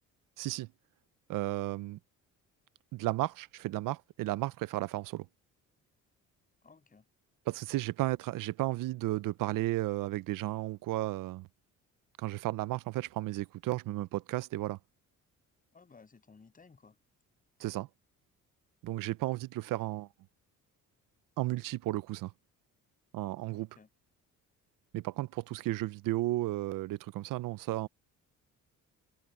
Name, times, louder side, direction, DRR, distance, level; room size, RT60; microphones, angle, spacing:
voice 1, 0.4-0.7 1.3-2.0 2.9-5.3 7.5-11.5 12.2-14.8 17.6-17.9 18.8-20.1 21.4-22.3 23.1-23.7 24.9-27.9, right 17 dB, 80° right, 0.7 m, -33 dB
voice 2, 6.6-7.0 15.7-17.0 23.5-23.9, left 4 dB, 25° left, 7.2 m, -58 dB
cardioid pair, 130°, 32 cm